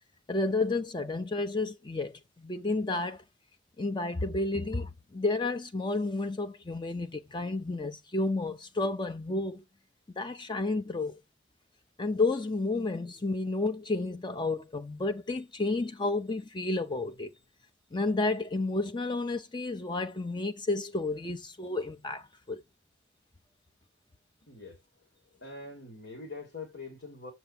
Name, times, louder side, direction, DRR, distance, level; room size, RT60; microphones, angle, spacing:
voice 1, 0.3-3.2 3.8-9.6 10.2-11.2 12.0-17.3 17.9-22.6, left 2 dB, 25° left, 0.6 m, -31 dB
voice 2, 24.4-24.8 25.3-27.3, left 3 dB, 75° left, 3.7 m, -44 dB
8.0 x 6.0 x 3.4 m
head